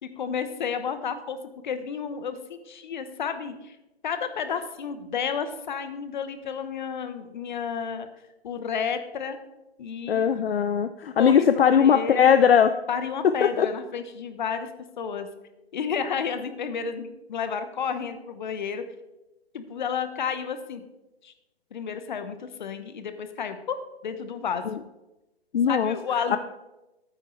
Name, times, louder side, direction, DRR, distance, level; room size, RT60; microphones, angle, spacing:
voice 1, 0.0-1.4 1.6-3.8 4.0-8.1 8.4-9.4 9.8-10.3 11.2-12.3 12.9-14.7 15.0-15.3 15.7-18.9 19.5-20.8 21.2-21.3 21.7-24.7 25.7-26.4, left 6 dB, 45° left, 9 dB, 1.0 m, -31 dB
voice 2, 10.1-12.7 13.4-13.7 24.7-24.8 25.5-25.9 26.3-26.4, left 8 dB, 65° left, 10 dB, 0.6 m, -20 dB
12.5 x 9.1 x 3.2 m, 0.99 s
figure-of-eight pair, 140°, 32 cm